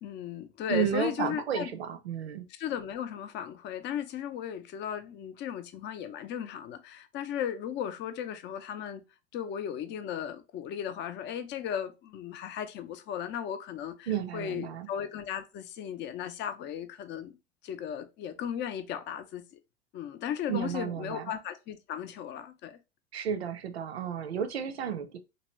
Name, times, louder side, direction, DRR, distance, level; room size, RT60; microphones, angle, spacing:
voice 1, 0.0-1.7 2.5-9.0 9.3-14.1 14.3-17.3 17.6-19.6 19.9-22.8, left 9 dB, 35° left, 0.5 m, -36 dB
voice 2, 0.7-2.5 14.1-14.9 20.5-21.3 23.1-25.2, right 8 dB, 80° right, 0.5 m, -32 dB
2.9 x 2.6 x 3.0 m
figure-of-eight pair, 75°, 32 cm